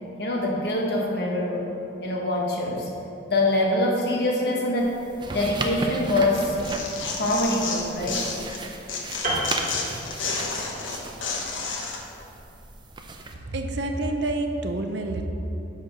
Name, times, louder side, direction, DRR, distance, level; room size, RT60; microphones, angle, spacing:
voice 1, 0.2-1.6 2.0-2.9 3.3-4.9 5.3-6.6 7.1-8.4 9.9-10.0, left 1 dB, 55° left, -2 dB, 1.4 m, -24 dB
sound 1, 4.8-13.3, right 2 dB, 25° right, 0.5 m, -36 dB
Tearing, 6.3-8.6 8.9-12.0, left 4 dB, 85° left, 1.2 m, -31 dB
Piano, 9.2-10.7 11.0-11.2, right 1 dB, 40° right, 1.8 m, -30 dB
voice 2, 13.4-15.3, right 2 dB, 65° right, 5 dB, 0.7 m, -28 dB
10.5 x 4.3 x 6.1 m, 2.9 s
head